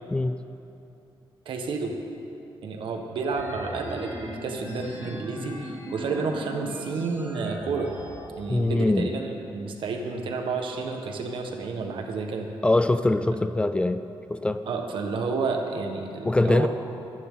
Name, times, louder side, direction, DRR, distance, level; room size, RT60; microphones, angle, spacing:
voice 1, 0.1-0.4 8.5-9.1 12.6-14.0 14.3-14.7 16.2-16.7, left 2 dB, 10° left, 10 dB, 0.3 m, -23 dB
voice 2, 1.4-1.9 2.6-7.9 8.4-12.5 14.7-16.7, right 4 dB, 65° right, 3 dB, 1.5 m, -30 dB
sound 1, 3.2-8.2, equal, 15° right, 4.1 m, -38 dB
23.5 x 11.0 x 3.9 m, 2.8 s
wide cardioid pair, 165°, 9 cm